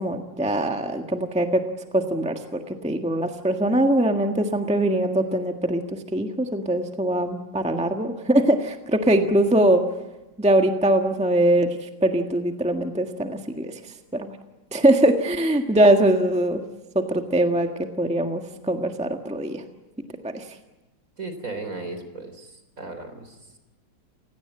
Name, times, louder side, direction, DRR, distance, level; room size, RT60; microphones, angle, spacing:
voice 1, 0.0-1.6 1.9-5.8 6.1-9.8 10.4-11.7 12.0-13.7 14.1-14.3 14.7-16.6 16.9-17.7 18.0-19.6 20.2-20.4, right 1 dB, 5° right, 4 dB, 1.4 m, -22 dB
voice 2, 21.2-23.4, right 3 dB, 45° right, 8 dB, 4.0 m, -36 dB
29.0 x 17.5 x 8.8 m, 1.0 s
omnidirectional pair, 1.9 m